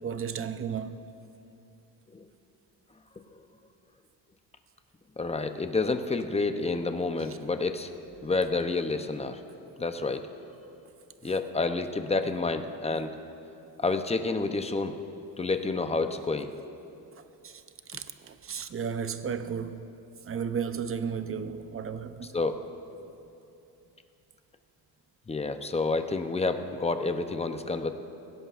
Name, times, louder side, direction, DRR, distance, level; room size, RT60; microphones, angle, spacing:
voice 1, 0.0-1.0 17.4-17.6 17.9-19.9 20.2-22.4, right 7 dB, 30° right, 0.7 m, -34 dB
voice 2, 5.2-7.9 8.2-9.4 9.8-10.2 11.2-13.1 13.8-15.0 15.4-16.5 22.3-22.5 25.3-27.9, left 3 dB, 15° left, 0.6 m, -29 dB
22.0 x 17.0 x 2.5 m
cardioid pair, 120°, 41 cm